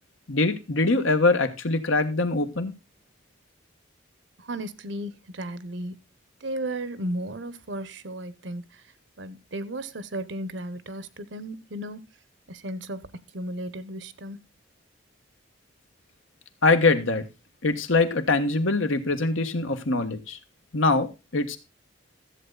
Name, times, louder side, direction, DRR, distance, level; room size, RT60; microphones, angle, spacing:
voice 1, 0.3-2.7 16.6-17.2 17.6-20.4 20.7-21.6, left 3 dB, 80° left, 1.4 m, -23 dB
voice 2, 4.4-6.0 6.4-8.8 9.2-12.0 12.5-14.4, right 1 dB, 65° right, 0.9 m, -35 dB
13.5 x 8.0 x 3.9 m
head